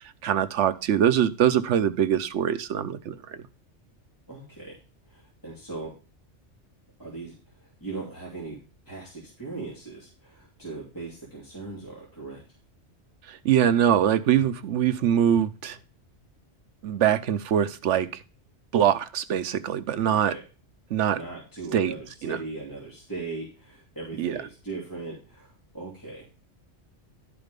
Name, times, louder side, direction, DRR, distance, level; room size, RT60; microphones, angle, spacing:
voice 1, 0.2-3.4 13.3-15.8 16.8-18.2 18.7-20.3 20.9-21.2 21.7-21.9 22.2-22.4 24.2-24.4, right 9 dB, 75° right, 1.0 m, -23 dB
voice 2, 4.3-4.8 5.0-6.0 7.0-8.6 8.9-12.6 20.1-20.4 21.1-26.3, right 3 dB, 15° left, 2.7 m, -39 dB
11.5 x 4.9 x 5.1 m
omnidirectional pair, 1.2 m